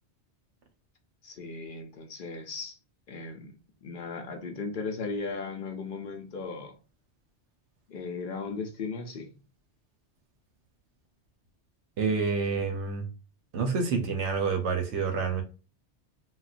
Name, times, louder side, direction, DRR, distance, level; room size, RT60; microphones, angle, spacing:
voice 1, 1.2-2.8 3.1-3.5 3.8-6.7 7.9-9.4, left 4 dB, 60° left, 0.7 m, -37 dB
voice 2, 12.0-13.1 13.5-15.4, right 5 dB, 85° right, 1.0 m, -28 dB
4.0 x 2.1 x 2.4 m
omnidirectional pair, 1.1 m